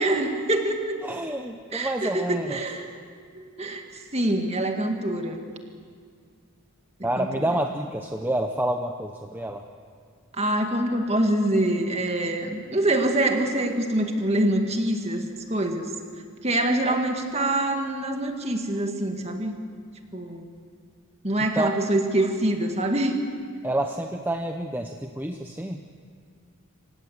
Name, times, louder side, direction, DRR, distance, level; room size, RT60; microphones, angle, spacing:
voice 1, 0.0-1.0 1.7-2.9 3.4-3.8 4.1-5.4 7.2-7.5 10.3-15.8 16.4-19.6 20.1-20.4 21.2-23.2, right 1 dB, 30° right, 4 dB, 1.9 m, -25 dB
voice 2, 1.0-2.6 7.0-9.6 16.8-17.0 21.6-21.7 23.6-25.8, right 1 dB, 10° right, 4 dB, 0.7 m, -28 dB
27.5 x 16.5 x 8.0 m, 2.1 s
head